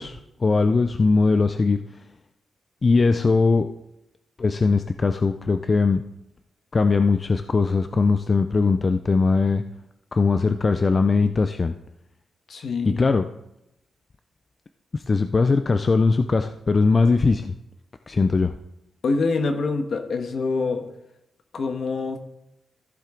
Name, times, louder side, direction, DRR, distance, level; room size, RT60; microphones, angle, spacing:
voice 1, 0.0-1.8 2.8-3.7 4.4-6.0 6.7-9.6 10.1-11.7 12.8-13.3 14.9-17.5 18.1-18.5, left 4 dB, 30° left, 9 dB, 0.4 m, -20 dB
voice 2, 12.5-13.0 19.0-20.8 21.5-22.2, left 4 dB, 55° left, 6 dB, 1.3 m, -25 dB
14.5 x 7.4 x 3.8 m, 0.85 s
wide cardioid pair, 145°, 0 cm